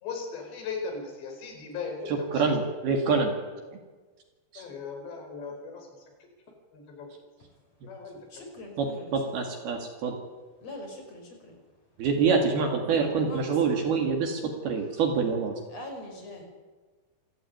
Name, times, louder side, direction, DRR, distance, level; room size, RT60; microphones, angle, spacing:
voice 1, 0.0-2.6 4.6-6.1 6.7-7.2 7.9-8.5, left 4 dB, 80° left, 3 dB, 6.9 m, -38 dB
voice 2, 2.3-3.3 4.5-4.6 8.8-10.1 12.0-15.5, right 5 dB, 65° right, 3 dB, 4.1 m, -26 dB
voice 3, 8.3-9.1 10.6-11.5 13.2-13.4 15.7-16.4, left 1 dB, 40° left, 3 dB, 6.3 m, -42 dB
27.5 x 15.5 x 9.4 m, 1.3 s
omnidirectional pair, 4.9 m